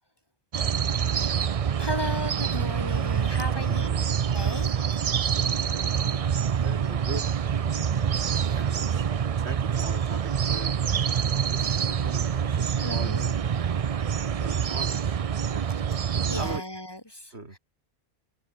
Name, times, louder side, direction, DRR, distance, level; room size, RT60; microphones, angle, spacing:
sound 1, 0.5-16.6, right 7 dB, 45° right, 0.5 m, -26 dB
voice 1, 1.0-1.5 1.8-3.9 4.3-5.0 11.3-11.5 12.8-13.3 14.4-14.7 16.3-17.6, left 1 dB, 25° left, 2.4 m, -36 dB
voice 2, 3.4-4.2 5.6-8.2 8.5-10.8 11.5-13.1 14.1-15.7 16.2-16.6 17.3-17.6, right 2 dB, 85° right, 3.9 m, -41 dB
omnidirectional pair, 1.1 m